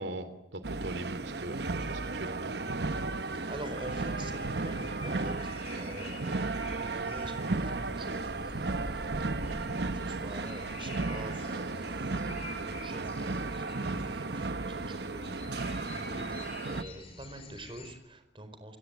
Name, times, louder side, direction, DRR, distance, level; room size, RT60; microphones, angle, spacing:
voice 1, 0.0-2.6, right 1 dB, 80° right, 11 dB, 3.1 m, -40 dB
sound 1, 0.6-16.8, right 3 dB, 65° right, 1.0 m, -34 dB
sound 2, 3.3-17.9, left 2 dB, 35° left, 6.0 m, -47 dB
voice 2, 3.5-12.2 12.6-18.8, right 1 dB, 30° right, 9 dB, 4.5 m, -46 dB
30.0 x 17.5 x 9.2 m, 0.96 s
head